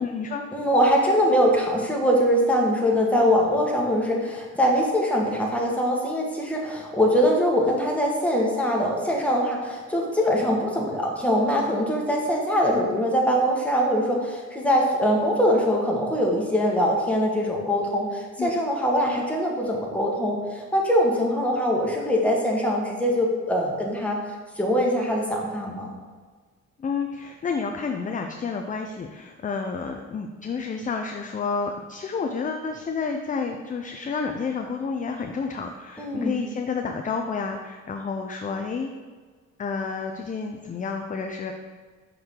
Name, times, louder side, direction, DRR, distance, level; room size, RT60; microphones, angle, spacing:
voice 1, 0.0-0.4 18.4-18.6 26.8-38.9 39.6-41.5, left 5 dB, 25° left, 4 dB, 0.4 m, -30 dB
voice 2, 0.5-24.2 24.6-25.9 36.0-36.4, equal, 5° left, -2 dB, 1.4 m, -23 dB
6.3 x 4.6 x 3.7 m, 1.5 s
cardioid pair, 90°, 30 cm